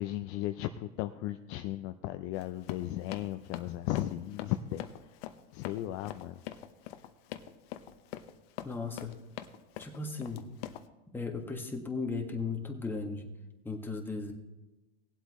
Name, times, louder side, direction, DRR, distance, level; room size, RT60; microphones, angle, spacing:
voice 1, 0.0-4.8 5.5-6.4, left 14 dB, 40° left, 8 dB, 0.5 m, -35 dB
Run, 2.3-10.9, left 12 dB, 60° left, 1.0 m, -44 dB
voice 2, 8.6-9.1 9.8-10.5 11.1-13.3 13.6-14.3, left 4 dB, 5° left, 1 dB, 1.6 m, -36 dB
19.5 x 8.0 x 3.1 m, 1.0 s
hypercardioid pair, 120°, 34 cm